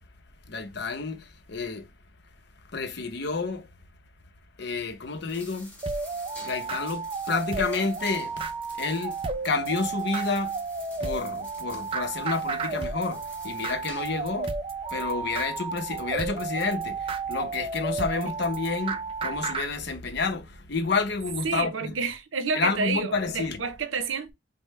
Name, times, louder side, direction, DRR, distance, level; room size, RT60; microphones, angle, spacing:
voice 1, 0.5-1.9 2.7-3.7 4.6-5.7 6.4-8.5 8.8-9.2 9.4-10.6 11.0-14.6 14.9-21.9 22.5-23.6, left 4 dB, 60° left, 0.7 m, -30 dB
sound 1, 5.1-14.4, left 1 dB, 10° left, 1.3 m, -49 dB
sound 2, 5.8-19.7, right 4 dB, 30° right, 0.4 m, -32 dB
voice 2, 21.4-24.3, right 5 dB, 85° right, 0.7 m, -29 dB
5.3 x 2.1 x 3.1 m
head